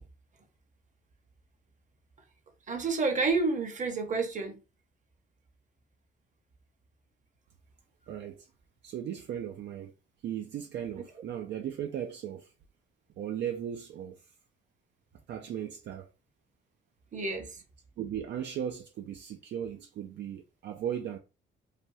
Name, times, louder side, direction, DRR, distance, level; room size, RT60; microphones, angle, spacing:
voice 1, 2.7-4.6 17.1-17.6, right 3 dB, 40° right, 0.8 m, -29 dB
voice 2, 8.1-8.5 8.8-9.9 10.2-12.5 13.2-14.3 15.3-16.1 18.0-21.2, right 9 dB, 60° right, 0.4 m, -37 dB
3.4 x 2.1 x 2.6 m
cardioid pair, 90°, 20 cm